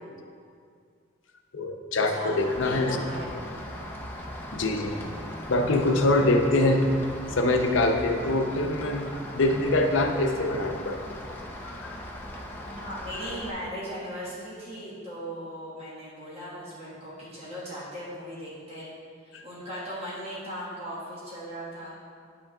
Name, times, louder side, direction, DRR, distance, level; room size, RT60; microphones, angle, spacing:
voice 1, 1.5-3.0 4.5-4.9 5.5-6.8 7.4-11.0 11.6-12.0 19.3-19.4, left 2 dB, 65° left, 4 dB, 0.7 m, -24 dB
voice 2, 2.1-3.4 12.7-18.9 19.2-21.9, equal, 30° right, -9 dB, 1.5 m, -38 dB
Rain, 2.4-13.5, left 1 dB, 10° left, 0.6 m, -39 dB
10.0 x 6.2 x 2.3 m, 2.2 s
head